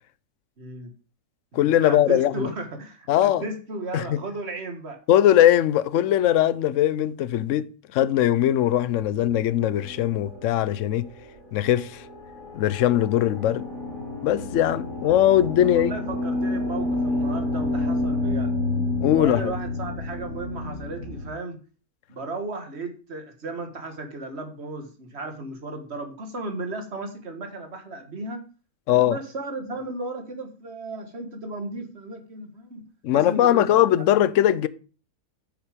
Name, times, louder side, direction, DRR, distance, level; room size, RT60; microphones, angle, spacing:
voice 1, 0.6-0.9 1.6-5.0 15.6-18.5 19.1-21.6 22.1-28.5 28.9-32.8 33.1-33.7, right 2 dB, 45° right, 1.8 m, -35 dB
voice 2, 1.5-2.5 3.1-3.4 3.9-4.2 5.1-7.7 7.9-11.1 11.5-12.0 12.5-13.6 14.2-15.9 19.0-19.5 28.9-29.2 33.0-34.7, left 12 dB, 65° left, 0.9 m, -20 dB
sound 1, 9.5-21.3, left 2 dB, 60° right, 4.6 m, -30 dB
9.5 x 7.1 x 5.0 m
omnidirectional pair, 1.6 m